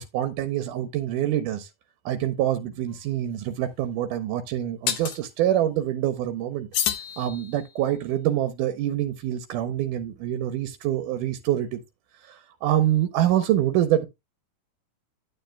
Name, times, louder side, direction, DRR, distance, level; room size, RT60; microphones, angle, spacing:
voice 1, 0.0-1.7 2.1-6.7 7.2-11.8 12.2-14.1, right 12 dB, 80° right, 2.2 m, -25 dB
sound 1, 2.9-3.0 4.9-5.2 6.7-7.8, left 10 dB, 70° left, 2.2 m, -29 dB
9.4 x 9.3 x 2.2 m
omnidirectional pair, 3.8 m